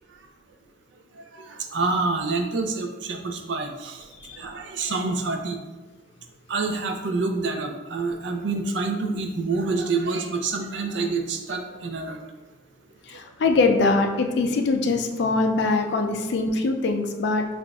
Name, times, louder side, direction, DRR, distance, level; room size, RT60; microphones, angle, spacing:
voice 1, 1.3-4.1 4.4-5.6 6.5-12.2, right 3 dB, 65° right, 4 dB, 0.5 m, -27 dB
voice 2, 13.1-17.5, left 3 dB, 55° left, 3 dB, 0.4 m, -23 dB
5.8 x 2.4 x 2.3 m, 1.2 s
head